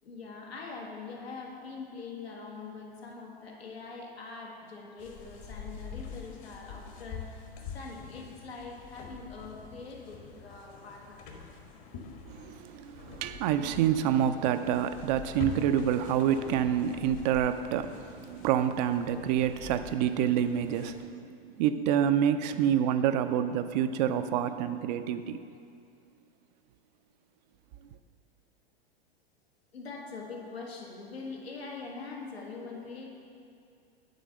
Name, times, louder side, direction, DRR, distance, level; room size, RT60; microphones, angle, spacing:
voice 1, 0.0-11.3 29.7-33.1, left 4 dB, 85° left, 1.6 m, -43 dB
sound 1, 5.0-21.0, left 6 dB, 50° left, 1.4 m, -45 dB
voice 2, 12.3-25.4, right 9 dB, 45° right, 0.4 m, -27 dB
9.2 x 4.0 x 6.3 m
hypercardioid pair, 110°, 30 cm